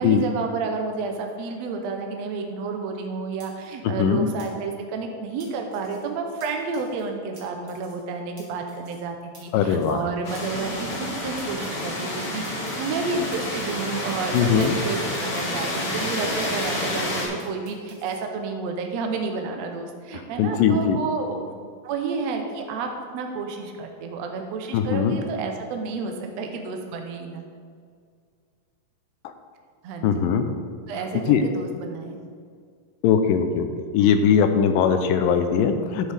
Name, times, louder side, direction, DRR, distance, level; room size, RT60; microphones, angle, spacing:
voice 1, 0.0-21.5 21.8-27.4 29.8-30.2 30.9-32.2, right 4 dB, 75° right, 3 dB, 1.6 m, -30 dB
sound 1, 3.4-3.5 4.4-4.5 5.4-6.0 6.4-6.5 6.7-7.0 7.4-7.5 7.7-8.0 8.4-8.5 8.7-9.0 9.3-9.4 9.7-10.0 10.3-10.4 10.7-11.1 11.4-12.0 12.4-14.1 14.3-15.1 15.4-16.6 16.9-18.2, right 2 dB, 30° right, 2.6 m, -51 dB
voice 2, 4.0-4.3 9.5-10.0 14.3-14.8 20.1-21.0 24.7-25.2 29.2-29.3 30.0-30.5 31.3-31.4 33.0-33.7 33.9-36.1, left 7 dB, 80° left, 7 dB, 2.3 m, -20 dB
sound 2, 10.2-17.3, left 1 dB, 45° left, 2.7 m, -29 dB
12.0 x 8.3 x 3.5 m, 2.1 s
omnidirectional pair, 4.0 m